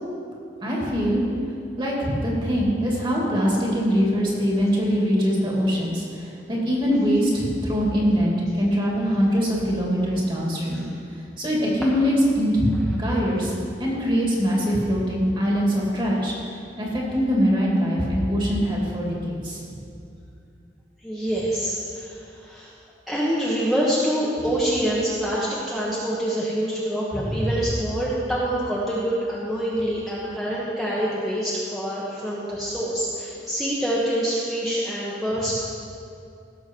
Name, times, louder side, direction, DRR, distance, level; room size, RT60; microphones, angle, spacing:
voice 1, 0.6-1.2 1.8-10.8 11.4-12.7 13.0-19.6 27.2-27.5, equal, 30° right, -3 dB, 2.5 m, -23 dB
voice 2, 21.0-22.7 23.1-35.5, equal, ahead, -7 dB, 1.3 m, -26 dB
17.0 x 6.8 x 4.6 m, 2.5 s
head